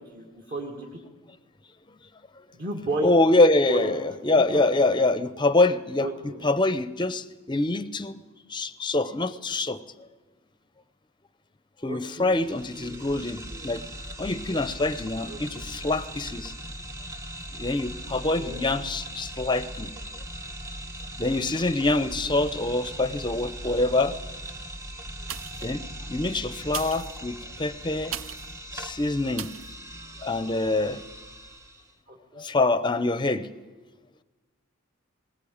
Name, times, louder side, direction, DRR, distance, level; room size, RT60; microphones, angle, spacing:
voice 1, 0.1-0.9 2.5-3.1 3.7-3.9 4.3-4.6 6.0-6.5 11.9-12.4 12.8-13.0 13.5-13.7 15.2-15.4 18.3-18.6 22.3-22.4 32.1-32.4, right 1 dB, 45° right, -2 dB, 2.2 m, -34 dB
voice 2, 3.0-6.1 6.4-8.2 8.5-9.8 11.8-13.8 14.2-16.5 17.5-19.9 21.2-24.2 25.6-25.8 26.1-28.1 28.7-29.6 30.2-31.0 32.4-33.5, left 2 dB, 20° left, 14 dB, 0.7 m, -25 dB
sound 1, 12.2-31.9, right 1 dB, 15° right, 1.0 m, -39 dB
sound 2, 25.2-25.8 26.6-28.6 29.3-29.7 30.3-30.4, right 10 dB, 65° right, 0.6 m, -38 dB
20.0 x 19.5 x 8.7 m, 1.3 s
head